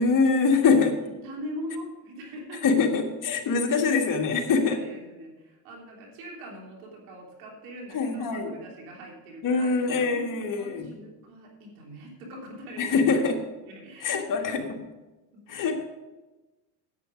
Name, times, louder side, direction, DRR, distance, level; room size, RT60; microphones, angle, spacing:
voice 1, 0.0-1.0 2.6-4.8 7.9-8.5 9.4-10.9 12.8-13.4 14.0-14.6 15.5-15.9, left 4 dB, 45° left, 3 dB, 1.8 m, -24 dB
voice 2, 1.0-2.6 3.7-3.9 4.6-10.2 10.6-13.0 13.7-14.5 15.3-15.6, equal, 90° right, 0 dB, 3.4 m, -42 dB
10.0 x 8.7 x 5.1 m, 1.1 s
supercardioid pair, 100°, 43 cm